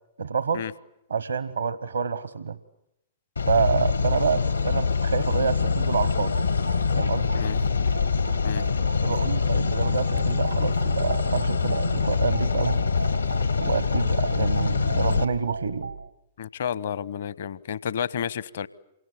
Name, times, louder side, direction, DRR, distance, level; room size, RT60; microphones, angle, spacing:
voice 1, 0.2-0.7 1.1-2.6 3.5-6.4 6.9-7.3 9.0-12.9 13.6-15.9, right 6 dB, 75° right, 17 dB, 1.0 m, -27 dB
sound 1, 3.4-15.2, left 5 dB, 80° left, 1.6 m, -24 dB
sound 2, 6.2-16.1, right 3 dB, 90° right, 1.5 m, -36 dB
voice 2, 16.4-18.7, left 8 dB, 55° left, 21 dB, 1.0 m, -31 dB
28.5 x 25.0 x 8.2 m, 0.83 s
figure-of-eight pair, 105°, 0 cm